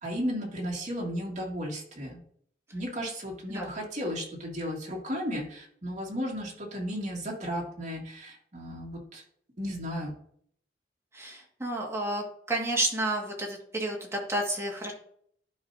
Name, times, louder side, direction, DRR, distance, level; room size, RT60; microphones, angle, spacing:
voice 1, 0.0-2.2 2.7-9.2 9.6-10.1, equal, 45° right, -2 dB, 2.4 m, -34 dB
voice 2, 11.1-14.9, right 1 dB, 15° right, -1 dB, 1.9 m, -31 dB
12.0 x 5.4 x 2.7 m, 0.65 s
head